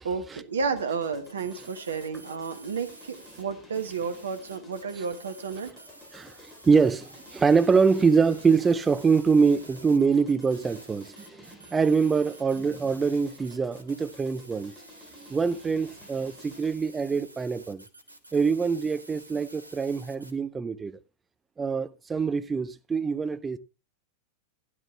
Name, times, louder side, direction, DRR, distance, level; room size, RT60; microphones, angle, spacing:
voice 1, 0.0-5.7, right 5 dB, 70° right, 1.4 m, -32 dB
sound 1, 0.8-16.9, left 2 dB, 15° left, 3.1 m, -53 dB
sound 2, 1.2-3.4 3.7-20.3, right 2 dB, 85° right, 1.2 m, -50 dB
voice 2, 6.6-14.7 15.2-17.8 18.3-21.0 21.6-23.6, right 5 dB, 15° right, 0.6 m, -24 dB
12.5 x 10.5 x 3.3 m
figure-of-eight pair, 90°, 0 cm